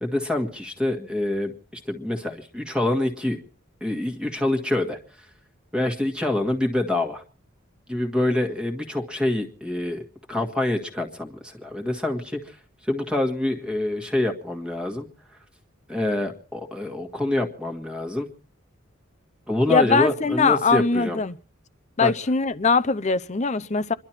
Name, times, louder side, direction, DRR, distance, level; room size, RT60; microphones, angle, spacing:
voice 1, 0.0-3.4 3.8-5.0 5.7-7.2 7.9-15.1 15.9-18.3 19.5-21.2 22.0-22.1, left 1 dB, 5° right, 1.6 m, -26 dB
voice 2, 19.7-21.4 22.0-23.9, left 4 dB, 35° left, 0.7 m, -21 dB
27.5 x 11.5 x 4.4 m
head